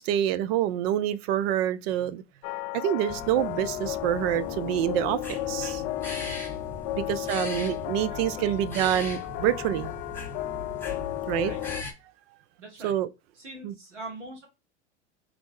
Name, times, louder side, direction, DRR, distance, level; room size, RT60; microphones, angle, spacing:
voice 1, 0.0-2.2 2.7-5.8 7.0-9.9 11.3-11.5 12.8-13.1 13.6-13.7, right 11 dB, 60° right, 0.5 m, -27 dB
sound 1, 2.4-11.8, left 15 dB, 50° left, 0.5 m, -34 dB
sound 2, 3.1-11.9, left 3 dB, 5° left, 1.2 m, -39 dB
voice 2, 6.9-7.4 8.1-8.9 11.4-11.6 12.6-12.9 13.4-14.5, right 2 dB, 90° right, 1.8 m, -43 dB
3.6 x 3.3 x 3.7 m
hypercardioid pair, 95°, 35 cm